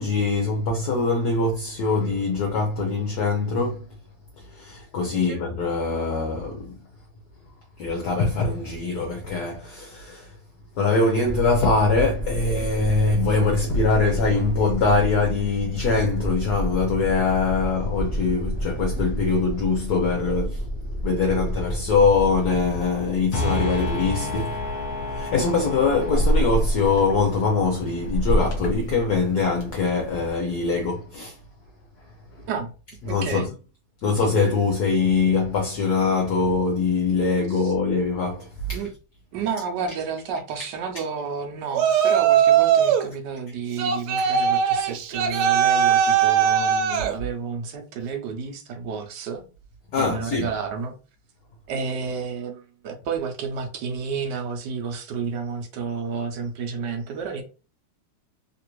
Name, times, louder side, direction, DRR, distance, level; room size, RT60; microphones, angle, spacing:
voice 1, 0.0-4.0 4.6-6.7 7.8-10.3 10.8-20.6 21.0-24.8 25.1-31.3 33.1-33.4 34.0-38.8 44.2-44.3 45.3-45.4 49.9-50.5, left 4 dB, 65° left, 1.0 m, -23 dB
sound 1, 11.2-22.9, right 1 dB, 10° left, 0.5 m, -30 dB
sound 2, 22.3-30.3, equal, 50° left, 1.3 m, -28 dB
voice 2, 33.1-33.5 37.5-37.7 38.7-38.9 39.3-49.4 50.0-50.9 51.7-57.4, right 5 dB, 70° right, 1.1 m, -31 dB
Yell, 41.7-43.1 43.8-47.2, right 8 dB, 85° right, 1.4 m, -20 dB
3.3 x 2.5 x 2.9 m
omnidirectional pair, 2.3 m